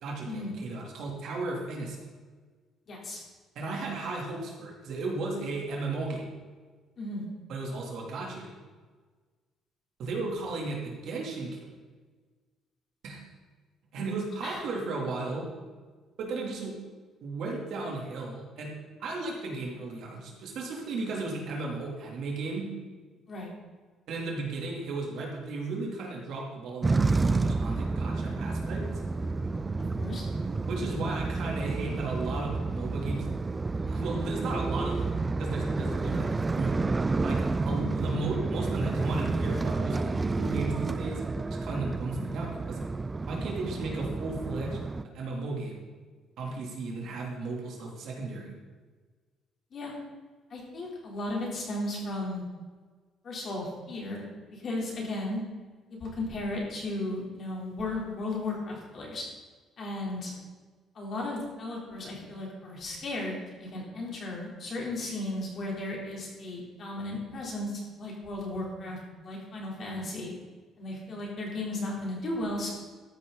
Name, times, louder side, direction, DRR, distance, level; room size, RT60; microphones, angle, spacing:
voice 1, 0.0-2.0 3.5-6.3 7.5-8.6 10.0-11.7 13.0-13.2 13.9-15.5 16.2-16.7 17.2-18.7 19.0-22.7 24.1-28.8 30.7-33.3 33.9-36.8 37.2-42.8 43.3-44.8 45.1-45.8 46.4-48.5, right 3 dB, 60° right, -1 dB, 3.2 m, -35 dB
voice 2, 2.9-3.2 7.0-7.3 14.4-14.6 23.3-23.5 30.0-30.3 37.7-37.9 49.7-49.9 50.5-52.4 53.2-54.2 54.5-55.4 55.9-59.2 59.8-60.3 61.0-70.3 70.8-72.7, left 2 dB, 35° left, -2 dB, 3.7 m, -35 dB
sound 1, 26.8-45.0, right 3 dB, 15° right, 0.3 m, -30 dB
14.0 x 11.0 x 4.1 m, 1.4 s
cardioid pair, 165°, 0 cm